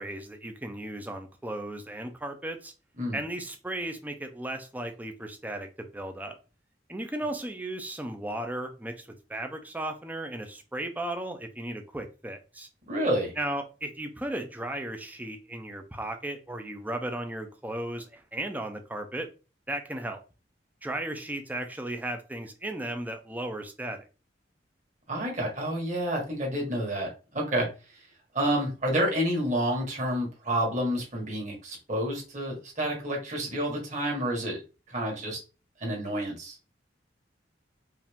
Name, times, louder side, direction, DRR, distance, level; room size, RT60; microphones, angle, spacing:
voice 1, 0.0-2.7 3.1-6.4 6.9-12.7 13.4-19.3 19.7-20.2 20.8-24.0, right 1 dB, 10° right, 0.6 m, -35 dB
voice 2, 12.9-13.3 25.1-27.7 28.3-34.6 34.9-35.4 35.8-36.6, right 1 dB, 40° right, 1.8 m, -29 dB
4.7 x 2.7 x 3.6 m
head